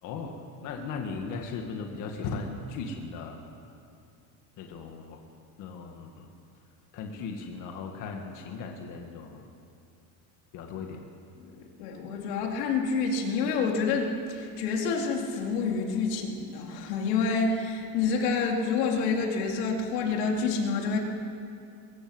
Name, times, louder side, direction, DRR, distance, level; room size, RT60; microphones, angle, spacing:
voice 1, 0.0-3.4 4.6-5.2 5.6-6.3 6.9-9.5 10.5-11.0, left 4 dB, 40° left, 3 dB, 1.8 m, -37 dB
voice 2, 11.4-21.0, left 4 dB, 85° left, 1 dB, 3.9 m, -28 dB
23.0 x 21.5 x 7.8 m, 2.5 s
cardioid pair, 180°, 47 cm